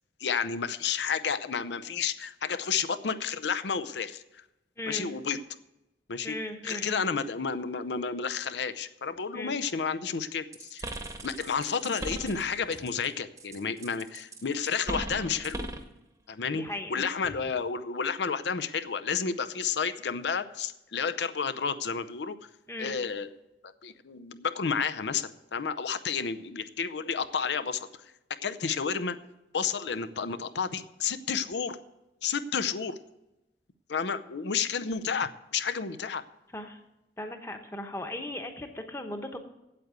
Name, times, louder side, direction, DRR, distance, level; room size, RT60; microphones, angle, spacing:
voice 1, 0.2-4.4 4.9-5.4 6.1-6.4 6.6-10.9 11.2-15.7 16.3-16.6 16.9-22.4 22.8-23.3 23.8-28.1 28.4-29.2 29.5-31.8 32.2-33.0 33.9-36.2, left 6 dB, 80° left, 13 dB, 0.6 m, -31 dB
voice 2, 4.8-5.1 6.2-7.1 9.3-9.6 16.5-17.1 22.7-23.0 36.5-36.8 37.2-39.4, left 1 dB, 15° left, 6 dB, 0.9 m, -37 dB
sound 1, 10.5-13.1 13.4-15.9, right 1 dB, 15° right, 0.9 m, -38 dB
8.5 x 8.1 x 8.0 m, 0.93 s
head